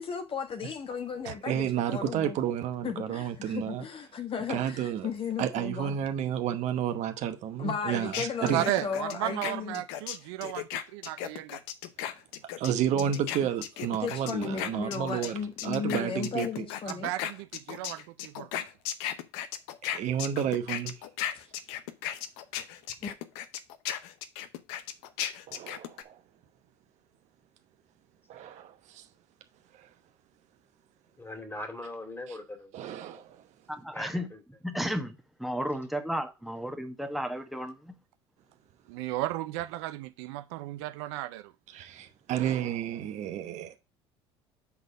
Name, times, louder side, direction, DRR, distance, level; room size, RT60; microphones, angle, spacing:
voice 1, 0.0-2.4 2.8-6.0 7.6-9.7 12.9-13.1 13.4-13.5 14.0-17.1 21.3-21.5 23.0-23.1, left 6 dB, 40° left, 1.3 m, -35 dB
voice 2, 1.4-3.8 4.5-5.1 5.4-8.6 12.6-15.4 15.6-16.7 19.8-20.9 25.5-26.2 28.3-29.0 29.7-29.9 32.7-33.4 41.7-43.8, right 9 dB, 60° right, 1.0 m, -31 dB
sound 1, 8.1-15.3 15.6-26.0, left 11 dB, 75° left, 0.7 m, -36 dB
voice 3, 8.5-11.6 16.9-18.6 38.9-41.5, right 16 dB, 75° right, 0.5 m, -34 dB
voice 4, 31.2-32.7 33.0-33.2 33.9-34.4, left 1 dB, 15° left, 2.4 m, -40 dB
voice 5, 33.7-34.3 34.6-37.9, equal, ahead, 1.3 m, -33 dB
7.0 x 4.0 x 5.1 m
hypercardioid pair, 70°, 14 cm